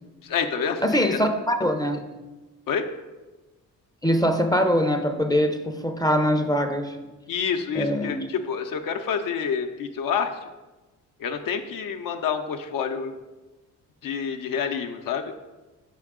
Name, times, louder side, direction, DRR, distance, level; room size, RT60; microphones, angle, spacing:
voice 1, 0.2-1.2 2.7-2.9 7.3-10.5 11.2-13.1 14.0-15.3, left 6 dB, 65° left, 5 dB, 0.6 m, -28 dB
voice 2, 0.8-2.0 4.0-7.0 7.7-8.3, equal, 10° left, 6 dB, 0.5 m, -23 dB
5.9 x 4.5 x 3.6 m, 1.1 s
supercardioid pair, 65°, 35 cm